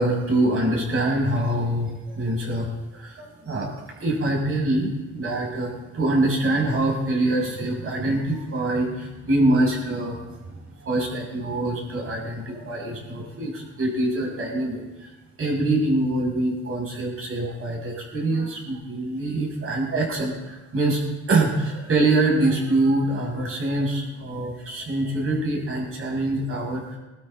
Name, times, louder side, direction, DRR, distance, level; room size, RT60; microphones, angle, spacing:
voice 1, 0.0-10.2 10.5-15.1 15.4-21.0 21.3-27.0, right 2 dB, 45° right, -2 dB, 6.8 m, -24 dB
22.0 x 12.5 x 4.0 m, 1.1 s
cardioid pair, 90°, 30 cm